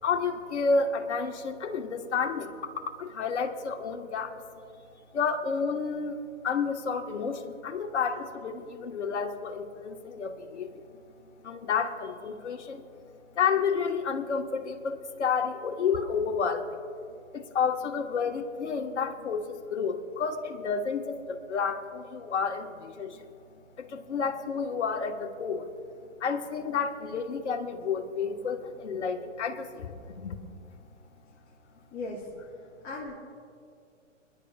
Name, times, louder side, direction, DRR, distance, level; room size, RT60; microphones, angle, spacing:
voice 1, 0.0-4.4 5.1-11.0 11.4-12.9 13.3-16.8 17.3-23.3 23.8-25.7 26.2-30.4, left 5 dB, 65° left, 4 dB, 1.5 m, -30 dB
voice 2, 31.9-32.3 32.8-33.1, left 3 dB, 20° left, -6 dB, 2.0 m, -36 dB
29.0 x 11.0 x 2.4 m, 2.4 s
hypercardioid pair, 125°, 38 cm